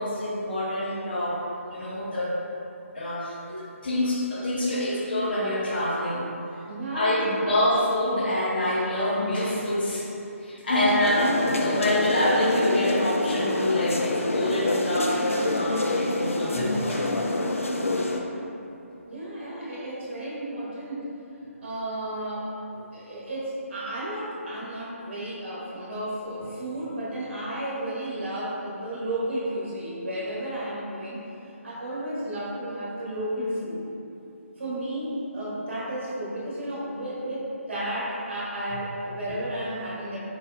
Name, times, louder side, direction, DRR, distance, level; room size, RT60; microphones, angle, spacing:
voice 1, 0.0-1.4 1.7-2.3 2.9-6.3 6.9-10.1 10.4-17.0, left 1 dB, 40° left, -5 dB, 0.8 m, -26 dB
voice 2, 6.7-7.5 19.1-21.1 21.6-22.5 22.9-31.2 31.6-33.8 34.6-40.2, right 1 dB, 50° right, -7 dB, 1.3 m, -33 dB
sound 1, 11.0-18.2, left 2 dB, 70° left, 0.4 m, -27 dB
4.0 x 4.0 x 2.6 m, 2.8 s
figure-of-eight pair, 145°, 8 cm